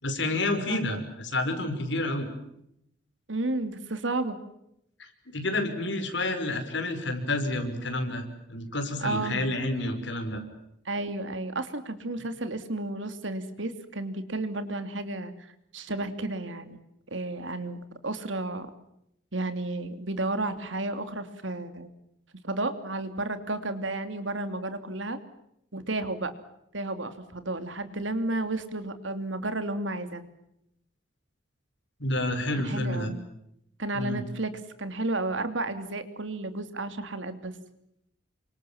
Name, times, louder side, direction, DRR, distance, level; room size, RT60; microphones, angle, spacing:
voice 1, 0.0-2.3 5.0-10.4 32.0-33.1 33.9-34.2, left 2 dB, 65° left, 6 dB, 5.7 m, -29 dB
voice 2, 0.7-1.0 3.3-4.4 9.0-9.4 10.8-16.8 17.1-18.7 19.3-21.9 22.4-25.2 25.7-26.3 26.7-30.3 32.6-33.2 33.8-34.5 34.8-37.5, right 2 dB, 75° right, 9 dB, 2.9 m, -32 dB
29.0 x 25.5 x 7.2 m, 0.78 s
head